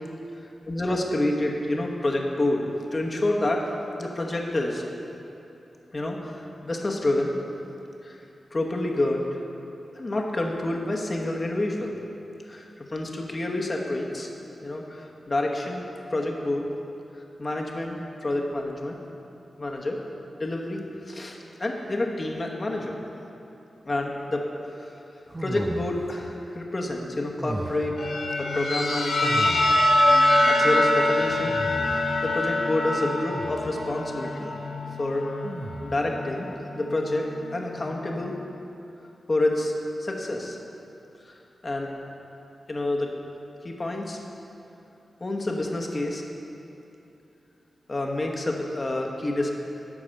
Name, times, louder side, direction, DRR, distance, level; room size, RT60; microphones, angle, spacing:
voice 1, 0.7-3.6 4.0-4.8 5.9-6.3 6.6-7.4 8.0-8.1 8.5-9.2 10.0-11.9 12.5-12.6 12.9-14.3 14.6-15.8 16.1-16.6 17.4-18.9 19.6-20.0 20.4-22.9 23.8-24.4 25.4-27.9 28.4-29.4 30.4-31.6 32.2-34.5 35.0-35.2 35.8-36.5 36.7-37.2 37.5-38.3 39.3-39.7 40.0-40.6 41.6-41.9 42.7-43.1 43.6-44.2 45.2-46.2 47.9-49.5, left 1 dB, 40° left, 0 dB, 1.1 m, -28 dB
sound 1, 25.3-26.2 27.3-28.1 29.2-30.0 31.2-32.2 33.3-33.8 35.4-36.1, right 1 dB, 25° right, 0.6 m, -36 dB
sound 2, 28.0-37.9, left 1 dB, 75° left, 1.2 m, -25 dB
11.0 x 4.8 x 6.5 m, 2.9 s
cardioid pair, 65°, 0 cm